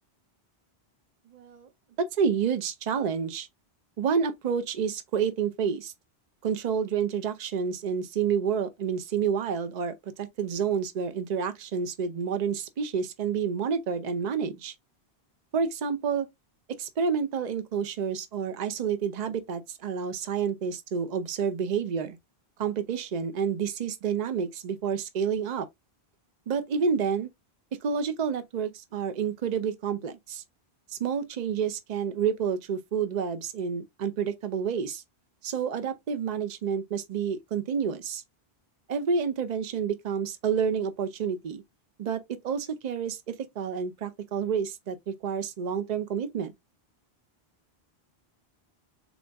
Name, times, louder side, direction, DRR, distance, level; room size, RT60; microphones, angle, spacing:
voice 1, 1.3-1.7 2.2-3.5 4.0-5.9 6.4-14.7 15.5-16.3 16.8-22.2 22.6-25.7 26.5-27.3 27.8-30.4 31.0-35.0 35.4-38.2 38.9-41.6 42.0-46.5, right 6 dB, 50° right, 0.6 m, -29 dB
3.8 x 2.4 x 3.4 m
omnidirectional pair, 1.1 m